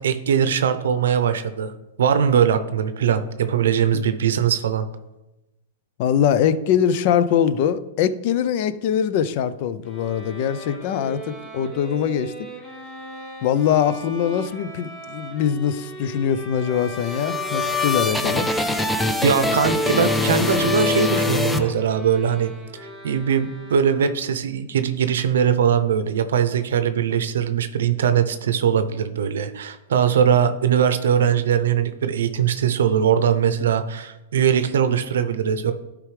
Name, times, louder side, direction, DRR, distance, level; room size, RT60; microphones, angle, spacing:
voice 1, 0.0-1.7 2.0-4.9 17.8-17.9 19.2-22.5 23.0-35.7, right 8 dB, 80° right, 10 dB, 0.6 m, -21 dB
voice 2, 6.0-12.3 13.4-18.5, left 8 dB, 50° left, 14 dB, 0.5 m, -22 dB
Bowed string instrument, 9.8-24.4, right 1 dB, 25° left, 1.8 m, -38 dB
sound 1, 16.7-22.3, left 2 dB, 5° left, 0.5 m, -23 dB
12.0 x 4.9 x 3.3 m, 0.99 s
hypercardioid pair, 130°, 0 cm